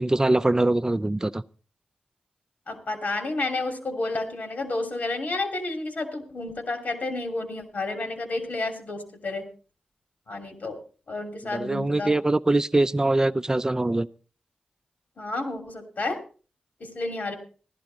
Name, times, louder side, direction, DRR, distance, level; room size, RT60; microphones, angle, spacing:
voice 1, 0.0-1.4 11.5-14.1, right 2 dB, 20° right, 11 dB, 0.6 m, -23 dB
voice 2, 2.7-9.5 10.3-10.8 11.1-12.1 15.2-16.2 16.8-17.3, left 2 dB, 70° left, 5 dB, 2.8 m, -31 dB
15.5 x 11.5 x 4.0 m, 0.37 s
cardioid pair, 45°, 3 cm